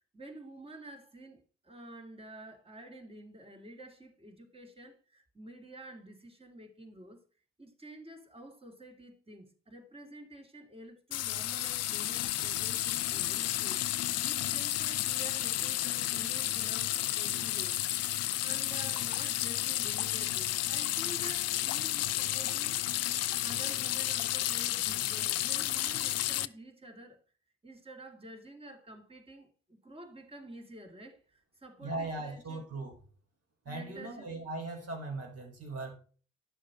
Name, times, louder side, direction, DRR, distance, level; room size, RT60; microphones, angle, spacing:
voice 1, 0.1-7.2 7.6-13.8 14.2-18.0 18.4-22.8 23.4-27.2 27.6-32.6 33.6-34.3, right 1 dB, 20° right, 2.5 m, -49 dB
sound 1, 11.1-26.5, left 14 dB, 55° left, 0.5 m, -32 dB
voice 2, 31.8-32.9 33.6-35.9, right 2 dB, 50° right, 3.8 m, -39 dB
11.0 x 6.4 x 4.1 m
hypercardioid pair, 50°, 31 cm